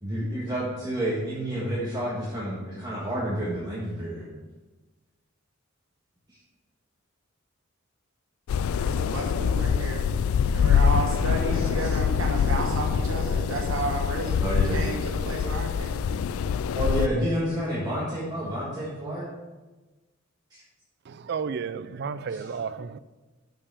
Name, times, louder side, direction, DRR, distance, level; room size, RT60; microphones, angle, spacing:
voice 1, 0.0-4.3 6.3-6.4 11.5-12.0 12.3-12.4 14.4-14.8 16.7-19.3 20.5-20.6, right 1 dB, 20° right, 1.6 m, -30 dB
sound 1, 8.5-17.1, left 7 dB, 85° left, 0.3 m, -25 dB
voice 2, 8.8-10.3 10.5-14.4 14.7-16.2, right 2 dB, 85° right, 1.2 m, -32 dB
voice 3, 21.0-23.0, right 6 dB, 55° right, 0.4 m, -32 dB
6.8 x 5.8 x 6.9 m
head